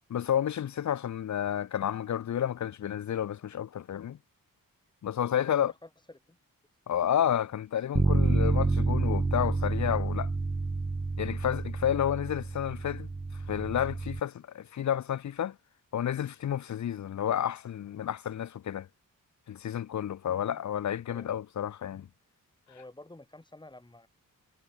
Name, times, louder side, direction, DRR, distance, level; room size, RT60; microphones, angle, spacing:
voice 1, 0.1-4.2 5.0-5.7 6.9-10.3 11.2-13.1 13.5-15.6 15.9-18.9 19.5-22.1, left 10 dB, 55° left, 0.6 m, -30 dB
voice 2, 5.3-6.4 20.3-20.6 21.1-21.3 22.7-24.1, left 2 dB, 15° left, 3.4 m, -50 dB
Bass guitar, 8.0-14.2, right 3 dB, 15° right, 0.3 m, -29 dB
wide cardioid pair, 120°, 35 cm